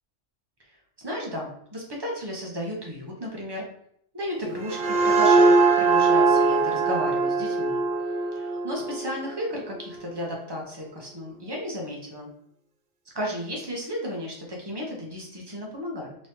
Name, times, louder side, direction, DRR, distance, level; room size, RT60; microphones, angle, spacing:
voice 1, 1.0-3.6 4.1-7.8 8.3-12.3 13.1-16.2, equal, 25° right, -1 dB, 0.7 m, -34 dB
sound 1, 4.4-9.9, right 3 dB, 60° right, 0.5 m, -21 dB
3.7 x 3.0 x 2.7 m, 0.68 s
omnidirectional pair, 1.3 m